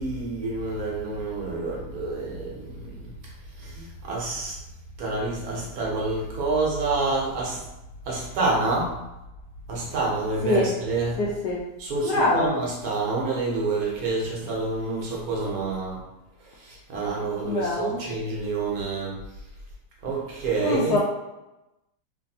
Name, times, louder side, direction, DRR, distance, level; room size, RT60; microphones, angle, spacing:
voice 1, 0.0-3.1 3.6-4.6 5.0-7.6 8.1-8.9 9.7-11.2 11.8-16.0 16.4-19.2 20.0-21.0, right 3 dB, 70° right, -3 dB, 1.2 m, -28 dB
voice 2, 11.2-11.6 12.0-12.6 17.4-18.0 20.6-21.0, left 2 dB, 80° left, -5 dB, 1.1 m, -24 dB
3.2 x 2.6 x 2.6 m, 0.98 s
omnidirectional pair, 1.7 m